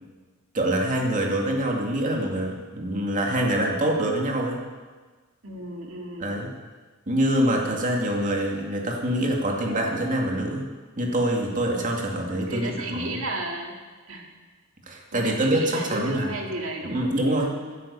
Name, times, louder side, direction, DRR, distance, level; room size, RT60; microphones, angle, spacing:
voice 1, 0.5-4.6 6.2-6.5 7.1-10.7 11.0-13.2 14.9-16.3 16.8-17.5, right 1 dB, 40° right, 0 dB, 2.3 m, -25 dB
voice 2, 5.4-6.4 12.5-13.8 14.1-14.3 15.1-17.1 17.5-17.8, right 1 dB, 90° right, 1 dB, 2.3 m, -34 dB
15.5 x 9.7 x 5.5 m, 1.4 s
head